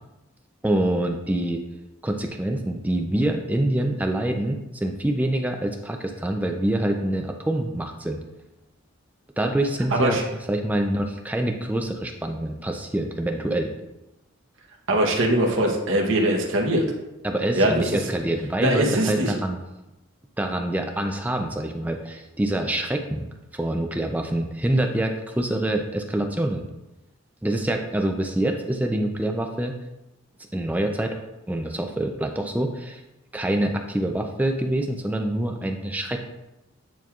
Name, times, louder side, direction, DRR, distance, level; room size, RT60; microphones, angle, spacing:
voice 1, 0.6-1.6 2.0-8.2 9.4-10.2 10.5-13.7 17.2-19.6 20.4-23.3 23.5-26.6 27.4-29.8 30.5-31.2 31.5-33.0 33.3-36.2, right 1 dB, 5° right, 3 dB, 0.4 m, -25 dB
voice 2, 9.9-10.2 14.9-16.8 17.6-17.8 18.6-19.4, right 1 dB, 60° right, 0 dB, 1.0 m, -21 dB
9.1 x 4.4 x 2.4 m, 0.97 s
head